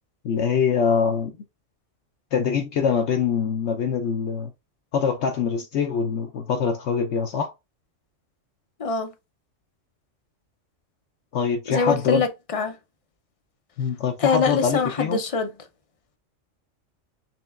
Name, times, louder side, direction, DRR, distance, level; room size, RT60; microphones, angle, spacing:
voice 1, 0.2-1.3 2.3-4.5 4.9-7.5 11.3-12.2 13.8-15.2, left 6 dB, 65° left, 0.8 m, -24 dB
voice 2, 11.7-12.7 14.2-15.5, left 5 dB, 45° left, 0.4 m, -24 dB
4.4 x 3.1 x 2.3 m
omnidirectional pair, 1.3 m